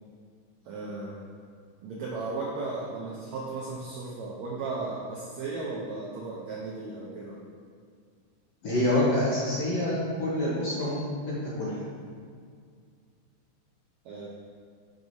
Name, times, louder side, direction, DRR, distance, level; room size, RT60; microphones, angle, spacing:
voice 1, 0.6-1.2 1.8-7.4 14.0-14.3, right 3 dB, 80° right, -5 dB, 1.6 m, -35 dB
voice 2, 8.6-11.7, left 1 dB, 65° left, -8 dB, 1.7 m, -27 dB
6.2 x 6.1 x 2.7 m, 2.1 s
omnidirectional pair, 4.0 m